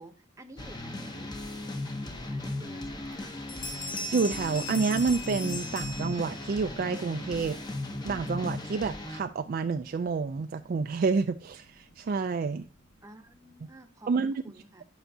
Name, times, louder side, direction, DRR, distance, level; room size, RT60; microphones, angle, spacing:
voice 1, 0.0-1.3 2.3-3.4 13.0-14.8, right 1 dB, 15° right, 0.8 m, -50 dB
sound 1, 0.6-9.2, left 2 dB, 20° left, 0.7 m, -37 dB
Bell, 3.1-3.2 3.5-6.6, left 2 dB, 40° left, 1.1 m, -38 dB
sound 2, 3.5-13.8, right 1 dB, 75° left, 2.3 m, -58 dB
voice 2, 4.1-7.6 8.0-12.7 14.1-14.4, right 4 dB, 45° right, 0.3 m, -29 dB
10.0 x 5.6 x 2.7 m
head